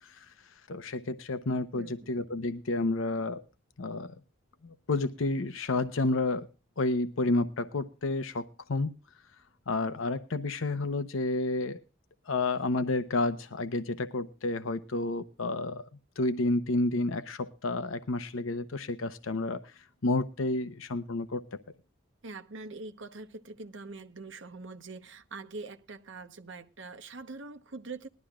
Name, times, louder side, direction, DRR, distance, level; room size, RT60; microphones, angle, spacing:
voice 1, 0.0-3.4 3.8-4.2 4.6-6.5 6.8-8.9 9.7-11.8 12.3-15.8 16.2-21.6, left 2 dB, 85° left, 0.8 m, -30 dB
voice 2, 1.7-2.1 22.2-28.1, right 3 dB, 70° right, 1.0 m, -43 dB
20.0 x 12.0 x 2.4 m
head